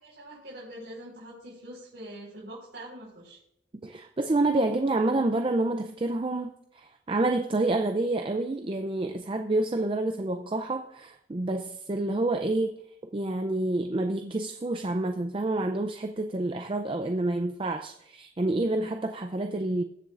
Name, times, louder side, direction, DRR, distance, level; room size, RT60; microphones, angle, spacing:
voice 1, 0.0-3.4, right 1 dB, 70° right, -8 dB, 4.7 m, -44 dB
voice 2, 3.8-12.7 13.1-19.8, right 2 dB, 30° right, 6 dB, 0.4 m, -28 dB
21.0 x 7.2 x 2.5 m, 0.77 s
head